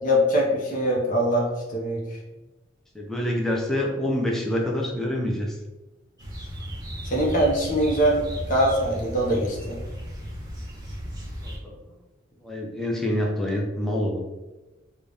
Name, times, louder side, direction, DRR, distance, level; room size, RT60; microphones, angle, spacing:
voice 1, 0.0-2.0 7.0-9.8, equal, 45° left, -2 dB, 0.8 m, -23 dB
voice 2, 2.9-5.6 11.4-11.8 12.4-14.2, left 1 dB, ahead, -2 dB, 0.5 m, -26 dB
sound 1, 6.2-11.6, equal, 20° right, 1.0 m, -35 dB
3.9 x 2.3 x 3.4 m, 1.1 s
head